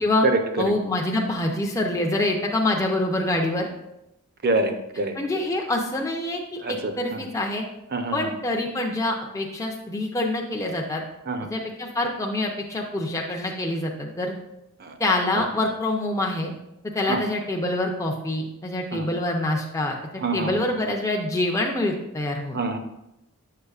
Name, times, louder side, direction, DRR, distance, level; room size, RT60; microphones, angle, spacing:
voice 1, 0.0-0.7 4.4-5.1 6.6-7.3 7.9-8.3 11.3-11.5 14.8-15.0 15.3-15.4 17.1-17.2 18.9-19.1 20.2-20.7 22.5-22.8, right 2 dB, 45° right, 7 dB, 0.6 m, -26 dB
voice 2, 0.6-3.7 5.2-7.7 8.1-11.0 11.5-14.3 15.0-16.5 16.9-20.0 20.3-22.6, left 2 dB, 15° left, 0 dB, 0.5 m, -26 dB
7.1 x 6.6 x 2.4 m, 0.88 s
head